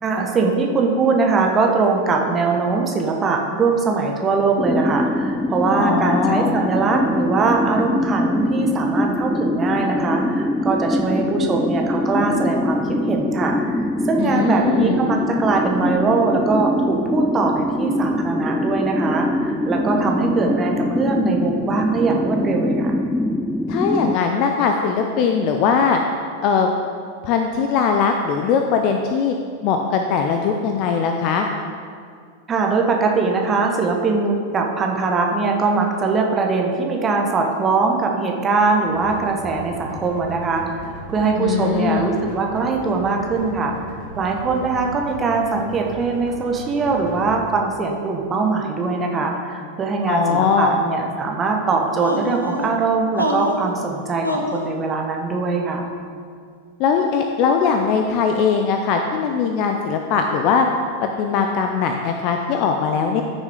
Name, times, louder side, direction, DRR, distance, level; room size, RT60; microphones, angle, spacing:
voice 1, 0.0-22.9 32.5-43.7 44.1-55.9, right 4 dB, 20° right, 1 dB, 1.3 m, -21 dB
sound 1, 4.6-24.2, left 1 dB, 5° left, 0.3 m, -23 dB
voice 2, 5.8-6.5 14.2-15.0 23.7-26.0 26.4-26.7 27.2-29.4 29.6-31.5 41.4-42.1 50.1-50.8 56.8-60.7 61.0-63.2, left 6 dB, 40° left, 4 dB, 0.6 m, -20 dB
sound 2, 38.9-47.3, right 2 dB, 50° right, 2.7 m, -37 dB
sound 3, 52.0-52.7 53.2-53.7 54.2-54.7, left 1 dB, 85° left, 1.0 m, -25 dB
14.5 x 6.3 x 3.7 m, 2.1 s
figure-of-eight pair, 90°, 0 cm